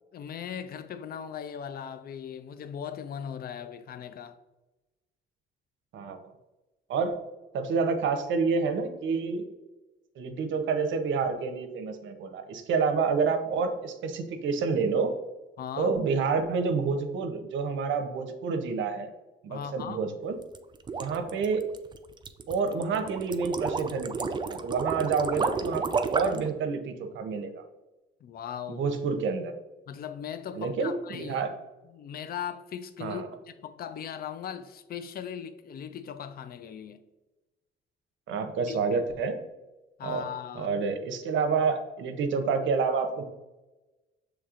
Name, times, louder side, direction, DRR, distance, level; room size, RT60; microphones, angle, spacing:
voice 1, 0.1-4.4 15.6-15.9 19.5-20.0 28.2-28.9 29.9-31.4 31.9-37.0 38.7-38.8 40.0-40.7, left 8 dB, 50° left, 0.4 m, -38 dB
voice 2, 5.9-6.3 6.9-7.2 7.5-9.4 10.2-15.1 15.8-19.1 19.4-20.4 21.0-21.6 22.5-27.6 28.7-29.5 30.5-31.5 33.0-33.3 38.3-39.4 40.0-40.3 40.5-43.2, right 5 dB, 75° right, 0.6 m, -28 dB
sound 1, 20.4-26.5, right 4 dB, 25° right, 0.3 m, -31 dB
6.4 x 3.2 x 2.4 m
cardioid pair, 90°, 20 cm